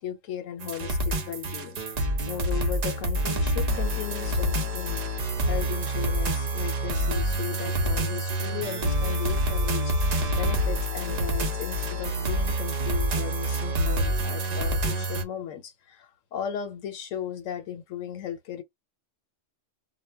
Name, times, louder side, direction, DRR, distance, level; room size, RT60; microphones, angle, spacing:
voice 1, 0.0-9.9 10.4-18.6, left 10 dB, 90° left, 1.1 m, -36 dB
sound 1, 0.6-15.2, right 1 dB, 55° right, 0.5 m, -27 dB
2.2 x 2.1 x 3.2 m
omnidirectional pair, 1.3 m